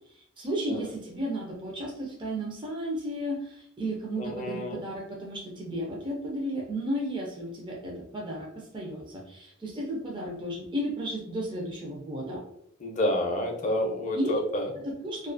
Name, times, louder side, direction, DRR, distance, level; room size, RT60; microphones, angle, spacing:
voice 1, 0.1-12.4 14.1-14.4 14.8-15.3, right 1 dB, 20° right, -2 dB, 0.4 m, -33 dB
voice 2, 4.2-4.8 12.8-14.7, left 1 dB, 35° left, 1 dB, 0.5 m, -29 dB
2.3 x 2.3 x 2.5 m, 0.71 s
head